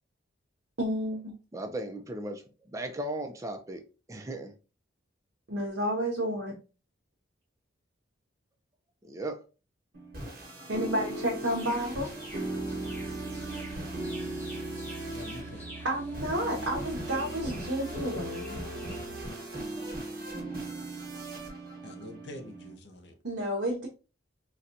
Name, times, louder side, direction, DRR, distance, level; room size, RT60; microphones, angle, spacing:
voice 1, 0.8-1.3 5.5-6.6 10.7-12.1 15.8-18.6 23.2-23.9, right 1 dB, 65° right, 0.8 m, -31 dB
voice 2, 1.5-3.8 4.1-4.6 9.0-9.4, right 1 dB, 15° right, 0.4 m, -37 dB
sound 1, 9.9-22.7, right 1 dB, 50° right, 1.2 m, -38 dB
sound 2, 11.4-19.1, right 1 dB, 10° left, 0.8 m, -50 dB
Musical instrument, 12.4-19.4, right 3 dB, 85° left, 1.1 m, -46 dB
voice 3, 15.1-15.8 21.8-23.2, left 1 dB, 60° left, 0.5 m, -46 dB
4.1 x 2.2 x 2.5 m
head